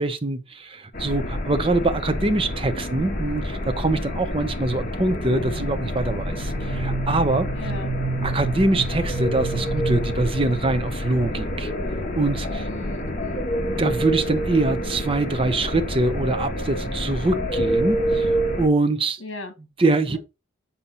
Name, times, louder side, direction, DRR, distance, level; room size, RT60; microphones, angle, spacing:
voice 1, 0.0-7.5 8.2-11.7 12.2-12.7 13.8-18.3 18.6-19.2 19.8-20.2, right 2 dB, 25° right, 0.7 m, -24 dB
sound 1, 0.9-18.7, equal, 40° left, 1.4 m, -28 dB
sound 2, 5.4-10.9, right 3 dB, 60° right, 0.3 m, -31 dB
voice 2, 7.5-7.9 12.5-13.5 19.2-19.5 20.1-20.2, left 2 dB, 70° left, 1.6 m, -36 dB
7.2 x 4.3 x 4.1 m
head